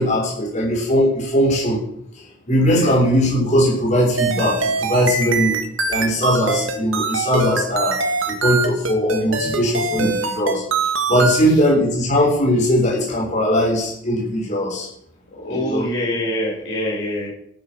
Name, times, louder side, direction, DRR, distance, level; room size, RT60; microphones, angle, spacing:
voice 1, 0.0-1.8 2.2-5.6 5.9-8.0 8.3-10.6 11.1-14.9 15.5-15.8, equal, 35° left, -5 dB, 6.2 m, -19 dB
sound 1, 4.2-11.4, right 4 dB, 70° right, 1.8 m, -23 dB
voice 2, 15.3-17.3, left 1 dB, 65° left, -5 dB, 5.2 m, -25 dB
13.5 x 7.4 x 6.7 m, 0.72 s
head